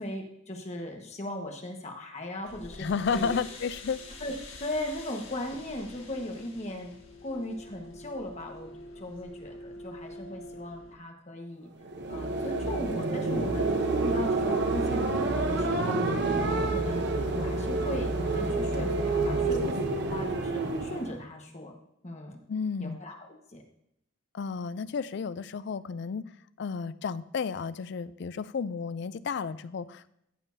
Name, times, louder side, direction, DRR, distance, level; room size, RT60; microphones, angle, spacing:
voice 1, 0.0-3.4 4.2-4.3 4.6-6.9 7.2-8.7 9.0-11.7 12.1-16.1 16.4-21.7 22.0-22.4 22.8-23.6, left 1 dB, 35° left, 2 dB, 1.4 m, -38 dB
sound 1, 2.4-10.9, left 2 dB, 90° left, 2.0 m, -46 dB
voice 2, 2.8-4.0 22.5-23.0 24.3-26.2 26.6-30.1, left 5 dB, 55° left, 16 dB, 0.4 m, -32 dB
sound 2, 11.8-21.2, right 2 dB, 55° right, 0.9 m, -28 dB
14.5 x 7.2 x 2.7 m, 0.78 s
head